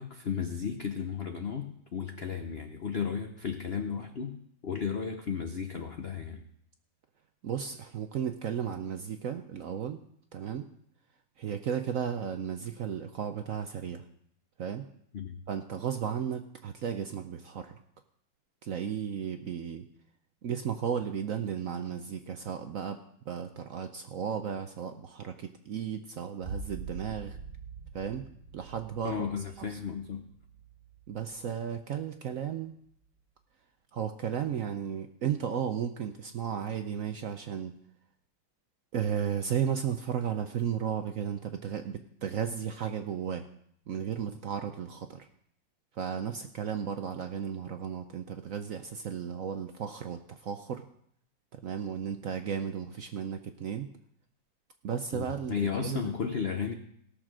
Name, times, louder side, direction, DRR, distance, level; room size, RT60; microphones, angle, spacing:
voice 1, 0.0-6.4 15.1-15.4 29.0-30.3 55.1-56.7, left 6 dB, 60° left, 5 dB, 0.6 m, -34 dB
voice 2, 7.4-10.0 10.3-10.7 11.4-14.0 14.6-14.9 15.5-17.7 18.6-19.9 20.4-27.4 27.9-28.3 28.5-29.3 29.7-29.8 31.1-32.7 33.9-37.8 38.9-43.5 43.9-45.3 45.9-50.9 51.5-53.9 54.8-56.0, right 8 dB, 70° right, 7 dB, 0.8 m, -34 dB
sound 1, 26.4-31.9 32.3-32.9, right 4 dB, 50° right, 1.8 m, -45 dB
17.5 x 6.6 x 6.2 m, 0.69 s
omnidirectional pair, 2.2 m